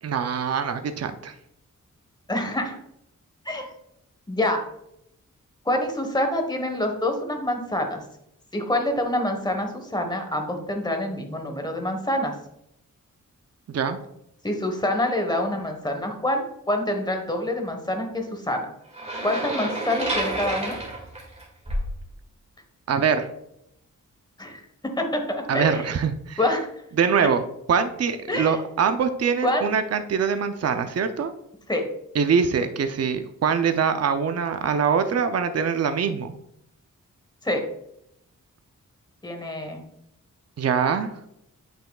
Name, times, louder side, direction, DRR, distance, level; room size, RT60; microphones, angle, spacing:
voice 1, 0.0-1.3 13.7-14.0 22.9-23.3 25.5-26.4 27.0-27.4 27.7-31.3 32.1-36.3 40.6-41.2, right 6 dB, 50° right, 8 dB, 0.6 m, -23 dB
voice 2, 2.3-2.8 3.4-3.7 4.3-4.6 5.6-8.0 8.5-12.3 14.4-18.7 19.2-20.8 24.4-24.6 25.0-25.9 26.4-26.7 28.3-28.6 29.4-29.7 31.7-31.8 37.4-37.6 39.2-39.8, left 1 dB, 15° left, 4 dB, 1.2 m, -26 dB
sound 1, 18.9-22.0, right 1 dB, 20° right, 2.1 m, -29 dB
8.9 x 5.6 x 2.3 m, 0.77 s
wide cardioid pair, 125°, 32 cm